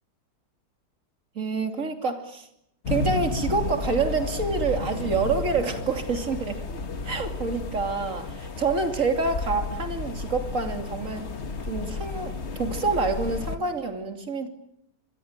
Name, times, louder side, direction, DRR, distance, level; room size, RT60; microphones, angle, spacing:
voice 1, 1.3-2.5 2.9-6.6 7.0-11.3 11.6-14.5, right 4 dB, 45° right, 6 dB, 3.2 m, -27 dB
sound 1, 2.8-13.6, left 3 dB, 40° left, 1.8 m, -32 dB
26.5 x 23.0 x 9.0 m, 0.77 s
omnidirectional pair, 1.8 m